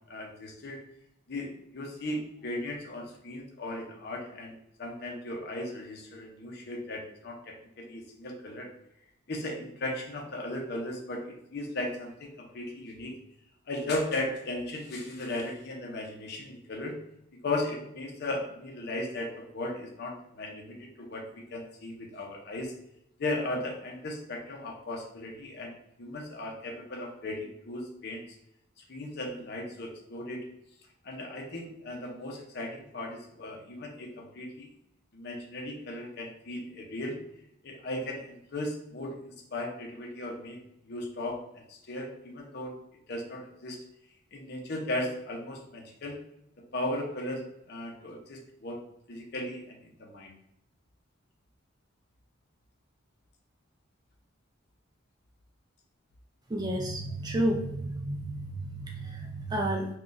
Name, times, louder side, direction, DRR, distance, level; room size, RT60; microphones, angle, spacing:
voice 1, 0.1-0.8 1.3-8.7 9.3-13.1 13.7-17.0 17.4-22.7 23.2-28.2 28.9-30.4 31.0-34.7 35.1-37.2 37.6-40.6 40.8-42.7 43.1-43.8 44.3-46.2 46.6-48.8 49.1-50.3, left 1 dB, 55° left, 1 dB, 0.6 m, -36 dB
voice 2, 56.5-59.9, right 1 dB, 20° right, 0 dB, 0.4 m, -31 dB
2.5 x 2.3 x 3.8 m, 0.76 s
head